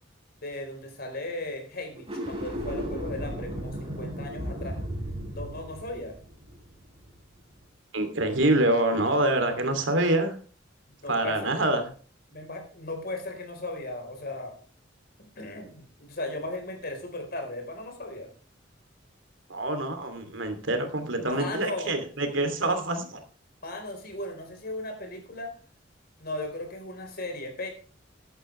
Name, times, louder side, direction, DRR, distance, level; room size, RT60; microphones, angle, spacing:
voice 1, 0.4-4.8 5.3-6.2 11.0-11.5 12.3-14.5 15.4-18.3 21.2-21.9 23.6-25.5 26.2-27.7, left 2 dB, 55° left, 4 dB, 4.3 m, -36 dB
sound 1, 1.9-7.2, equal, 30° right, 4.6 m, -35 dB
voice 2, 7.9-10.4 11.1-11.9 19.5-23.2, right 1 dB, 85° right, 7 dB, 2.9 m, -26 dB
15.5 x 11.5 x 3.3 m, 0.38 s
head